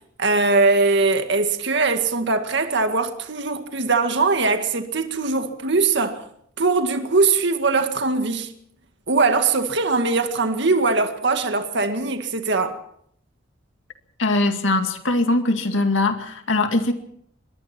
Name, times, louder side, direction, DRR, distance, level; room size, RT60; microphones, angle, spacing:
voice 1, 0.2-6.2 6.6-8.5 9.1-12.8, right 3 dB, 60° right, 2.0 m, -21 dB
voice 2, 14.2-16.9, left 2 dB, 70° left, 2.2 m, -21 dB
25.5 x 22.5 x 4.5 m
head